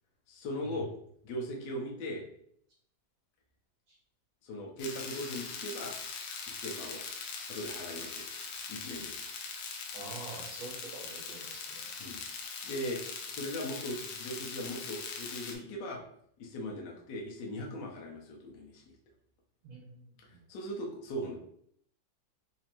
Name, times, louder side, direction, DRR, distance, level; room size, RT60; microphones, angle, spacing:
voice 1, 0.3-0.9 1.2-2.2 4.4-5.9 6.5-7.0 7.5-8.3 8.7-9.2 12.0-12.2 12.6-13.0 13.3-16.0 16.4-19.0 20.5-21.3, equal, 65° left, -2 dB, 1.3 m, -39 dB
sound 1, 4.8-15.6, left 5 dB, 85° left, 1.5 m, -41 dB
voice 2, 9.9-11.9 19.6-20.4, right 3 dB, 80° right, -4 dB, 1.9 m, -46 dB
4.2 x 2.8 x 2.9 m, 0.68 s
omnidirectional pair, 2.2 m